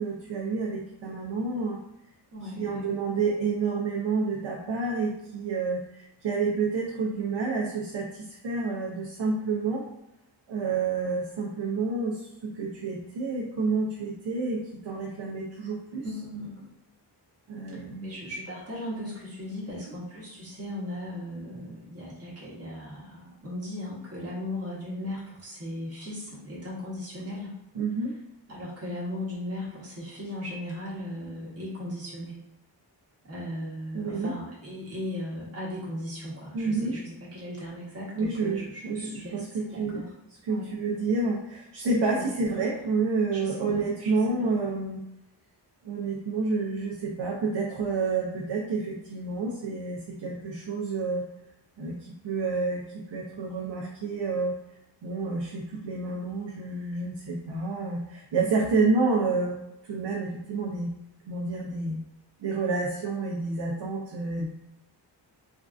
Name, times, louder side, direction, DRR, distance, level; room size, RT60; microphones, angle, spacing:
voice 1, 0.0-1.8 2.4-9.8 10.5-16.2 17.5-18.1 19.7-19.8 27.7-28.1 33.9-34.3 36.5-37.0 38.1-45.0 45.8-51.2 51.8-51.9 52.2-54.5 55.0-59.6 59.9-60.9 61.3-62.0 62.4-64.5, right 4 dB, 75° right, -2 dB, 0.7 m, -29 dB
voice 2, 2.3-2.9 16.0-16.6 18.0-27.6 28.5-32.3 33.3-37.0 37.3-39.4 39.7-40.0 40.5-40.7 42.1-42.2 43.3-43.6 44.0-44.1, left 1 dB, 35° right, -6 dB, 1.1 m, -37 dB
3.6 x 2.4 x 2.4 m, 0.87 s
wide cardioid pair, 140°, 43 cm